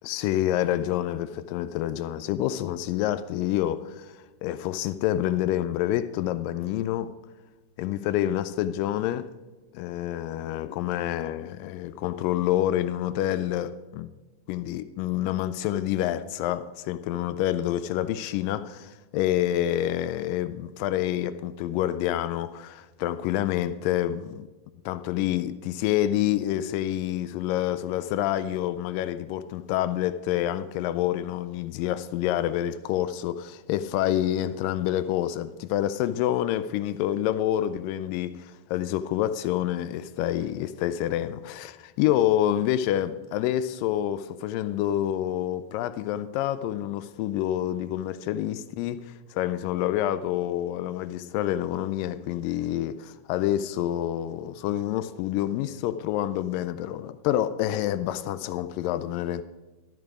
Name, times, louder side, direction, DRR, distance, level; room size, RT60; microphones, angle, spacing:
voice 1, 0.0-7.1 7.8-9.3 9.7-14.1 14.5-24.5 24.9-59.4, left 12 dB, 90° left, 2.3 m, -27 dB
12.5 x 9.3 x 4.8 m
omnidirectional pair, 3.9 m